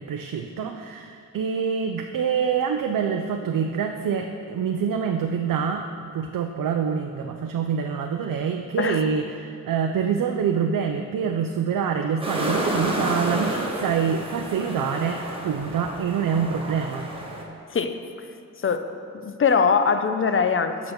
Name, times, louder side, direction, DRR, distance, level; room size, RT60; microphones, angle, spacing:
voice 1, 0.0-17.1, right 7 dB, 90° right, 4 dB, 0.5 m, -26 dB
voice 2, 8.8-9.1 17.7-18.0 18.6-18.9 19.1-20.9, left 5 dB, 40° left, 9 dB, 0.5 m, -22 dB
sound 1, 12.2-17.4, right 1 dB, 15° right, 1.1 m, -30 dB
8.1 x 5.8 x 6.6 m, 2.5 s
wide cardioid pair, 135°, 32 cm